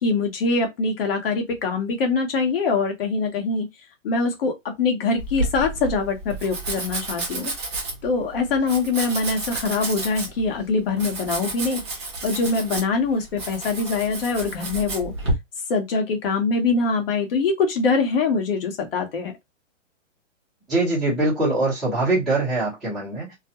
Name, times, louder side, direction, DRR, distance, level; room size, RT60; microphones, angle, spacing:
voice 1, 0.0-3.7 4.0-7.5 8.0-15.1 15.7-19.3, left 4 dB, 50° left, 0.9 m, -23 dB
Domestic sounds home sounds, 5.2-15.3, right 2 dB, 25° right, 0.5 m, -31 dB
voice 2, 20.7-23.3, right 2 dB, ahead, 0.9 m, -23 dB
2.3 x 2.1 x 2.7 m
hypercardioid pair, 160°, 37 cm